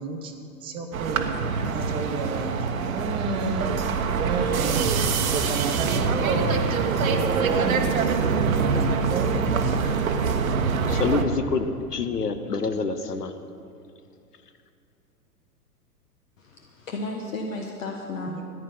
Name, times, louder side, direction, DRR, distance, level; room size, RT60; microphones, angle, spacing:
voice 1, 0.0-1.4 1.6-2.5 2.9-3.7 4.2-4.9 5.3-7.9 8.2-8.4 9.1-9.9 18.3-18.4, right 3 dB, 10° right, 4 dB, 0.6 m, -31 dB
sound 1, 0.9-11.2, right 5 dB, 60° right, 1.1 m, -24 dB
voice 2, 10.9-11.7 11.9-13.3, left 4 dB, 75° left, 9 dB, 1.1 m, -26 dB
voice 3, 16.4-18.4, left 2 dB, 55° left, 2 dB, 1.3 m, -33 dB
14.0 x 10.0 x 5.7 m, 2.5 s
figure-of-eight pair, 105°, 48 cm